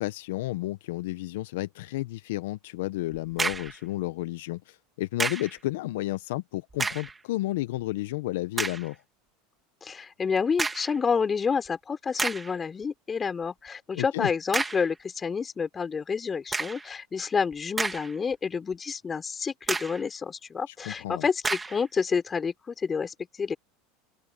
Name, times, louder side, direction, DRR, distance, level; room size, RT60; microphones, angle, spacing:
voice 1, 0.0-9.0 13.9-14.3 20.7-21.2, left 17 dB, 75° left, 0.9 m, -32 dB
sound 1, 3.1-3.8 5.2-5.6 6.7-7.2 7.8-7.9 8.6-8.9 10.6-11.0 11.7-11.8 12.2-12.6 14.5-14.9 16.5-16.9 17.5-18.3 18.7-18.8 19.7-20.1 21.4-21.8, right 3 dB, 15° right, 2.0 m, -30 dB
voice 2, 9.8-23.6, left 5 dB, 25° left, 5.1 m, -29 dB
open air
hypercardioid pair, 100°, 0 cm